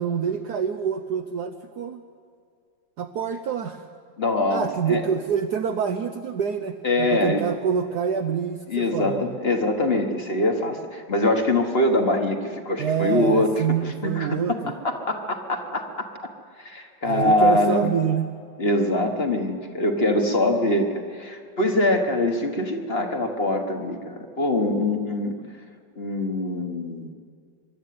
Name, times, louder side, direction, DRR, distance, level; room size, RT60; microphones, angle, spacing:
voice 1, 0.0-2.0 3.0-3.9 4.5-9.4 12.8-14.7 17.0-18.3, right 7 dB, 65° right, 5 dB, 1.2 m, -26 dB
voice 2, 4.2-5.0 6.8-7.4 8.7-13.5 14.0-14.4 14.8-16.1 16.6-17.9 18.6-25.3 26.0-27.1, left 1 dB, 35° left, 4 dB, 1.5 m, -23 dB
24.0 x 12.0 x 9.4 m, 2.3 s
omnidirectional pair, 2.0 m